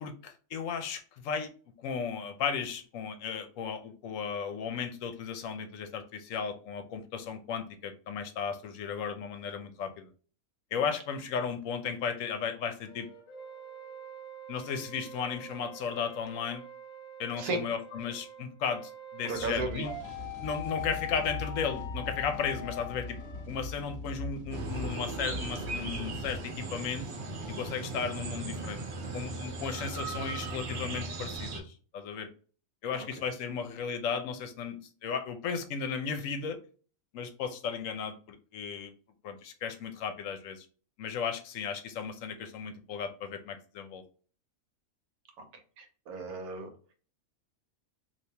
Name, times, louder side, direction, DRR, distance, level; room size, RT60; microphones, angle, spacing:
voice 1, 0.0-1.5 1.8-10.1 10.7-13.1 14.5-16.6 17.2-19.9 20.4-23.2 23.5-27.1 27.5-28.8 29.1-32.3 32.8-36.6 37.1-38.9 39.2-40.7 41.0-44.0, left 6 dB, 70° left, 0.9 m, -35 dB
sound 1, 12.9-23.5, left 4 dB, 40° left, 0.4 m, -44 dB
voice 2, 19.2-19.8 33.0-33.1 45.4-45.5 45.8-46.7, right 3 dB, 85° right, 1.3 m, -34 dB
sound 2, 19.3-26.4, left 2 dB, 15° left, 0.8 m, -41 dB
sound 3, 24.5-31.6, right 3 dB, 55° right, 1.0 m, -38 dB
3.4 x 2.7 x 2.7 m
omnidirectional pair, 1.5 m